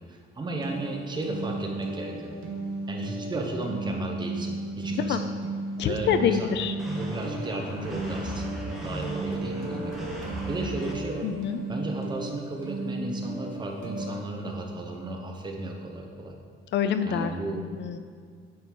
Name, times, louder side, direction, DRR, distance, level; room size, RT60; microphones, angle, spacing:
voice 1, 0.0-2.3 2.9-5.2 5.8-6.6 6.9-9.9 10.5-11.3 11.7-16.4 17.0-17.6, right 2 dB, 20° right, 1 dB, 1.0 m, -34 dB
sound 1, 0.6-14.1, right 2 dB, 80° right, 1.3 m, -35 dB
voice 2, 5.8-6.7 11.2-11.6 16.7-18.0, left 7 dB, 60° left, 9 dB, 0.5 m, -26 dB
sound 2, 6.8-10.9, right 1 dB, ahead, 1.3 m, -36 dB
9.4 x 5.6 x 4.7 m, 2.1 s
cardioid pair, 170°, 21 cm